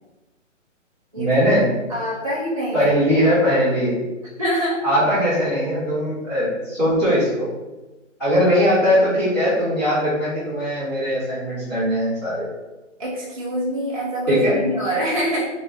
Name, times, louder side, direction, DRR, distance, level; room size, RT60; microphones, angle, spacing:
voice 1, 1.2-1.7 2.7-4.0 4.8-7.5 8.2-12.5 14.3-14.6, equal, 5° left, -15 dB, 0.9 m, -20 dB
voice 2, 1.9-2.9 3.3-3.4 4.4-4.8 13.0-15.5, equal, 30° right, -7 dB, 0.3 m, -25 dB
3.1 x 3.0 x 2.6 m, 1.1 s
hypercardioid pair, 165°, 38 cm